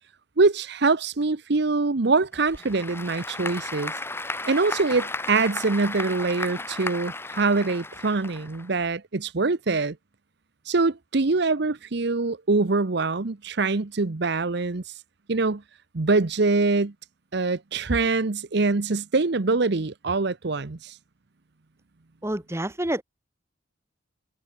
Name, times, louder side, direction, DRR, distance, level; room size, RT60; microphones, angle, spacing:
voice 1, 0.4-3.9 4.5-10.0 10.7-14.8 15.3-15.6 15.9-16.9 17.3-20.9, right 3 dB, 60° right, 0.8 m, -24 dB
Applause / Crowd, 2.3-8.9, left 2 dB, 10° left, 5.5 m, -34 dB
voice 2, 22.2-23.0, right 1 dB, 15° right, 1.5 m, -28 dB
head